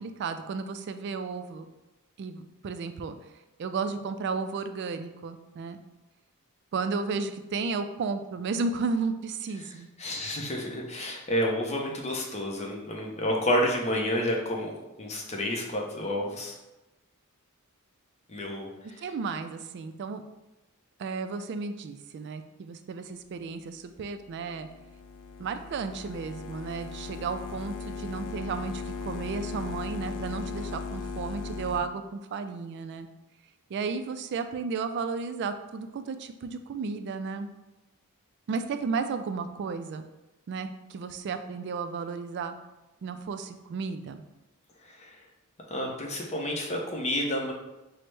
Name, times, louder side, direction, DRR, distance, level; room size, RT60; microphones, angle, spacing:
voice 1, 0.0-1.7 2.2-3.2 3.6-5.8 6.7-9.9 19.0-20.2 21.0-24.7 25.4-33.1 33.7-37.5 38.5-40.0 40.5-42.5 43.0-44.2, right 4 dB, 50° right, 9 dB, 0.3 m, -33 dB
voice 2, 10.0-14.7 15.0-16.5 18.3-18.7 45.0-45.1 45.7-47.5, left 1 dB, 30° left, 0 dB, 0.6 m, -29 dB
sound 1, 24.1-31.8, left 4 dB, 90° left, 0.4 m, -38 dB
5.9 x 2.1 x 3.2 m, 1.0 s
head